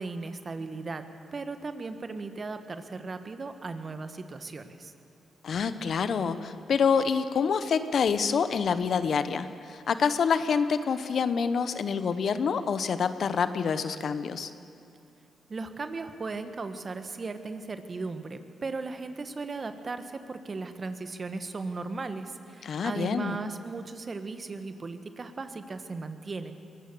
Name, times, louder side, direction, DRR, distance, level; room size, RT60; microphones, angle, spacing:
voice 1, 0.0-4.9 15.5-26.5, right 3 dB, 45° right, 9 dB, 1.5 m, -37 dB
voice 2, 5.4-14.5 22.6-23.4, left 6 dB, 65° left, 12 dB, 0.9 m, -27 dB
22.0 x 17.5 x 6.9 m, 2.5 s
supercardioid pair, 50°, 0 cm